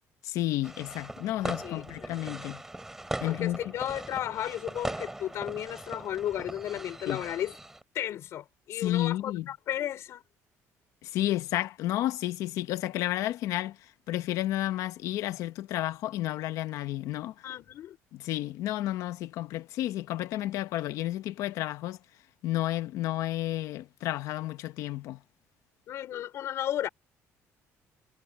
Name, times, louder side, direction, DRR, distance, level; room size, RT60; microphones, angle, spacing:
voice 1, 0.2-2.6 3.2-3.6 7.1-7.2 8.8-9.4 11.0-13.8 14.1-17.5 18.1-22.0 22.4-25.2, left 14 dB, 75° left, 1.1 m, -31 dB
sound 1, 0.6-7.8, right 1 dB, 5° right, 4.1 m, -40 dB
voice 2, 1.6-2.2 3.2-7.6 7.9-10.2 17.4-18.0 25.9-26.9, left 11 dB, 55° left, 5.6 m, -34 dB
cardioid pair, 165°, 6 cm